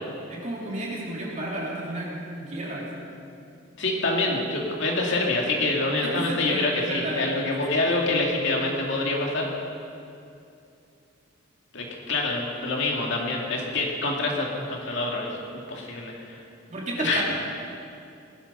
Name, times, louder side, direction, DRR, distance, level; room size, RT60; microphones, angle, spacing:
voice 1, 0.3-3.0 6.0-7.3 7.8-8.0 16.7-17.2, right 1 dB, 35° right, -4 dB, 3.3 m, -32 dB
voice 2, 3.8-9.5 11.7-16.4 17.0-17.2, left 2 dB, 60° left, -1 dB, 2.5 m, -26 dB
18.5 x 12.0 x 5.5 m, 2.6 s
head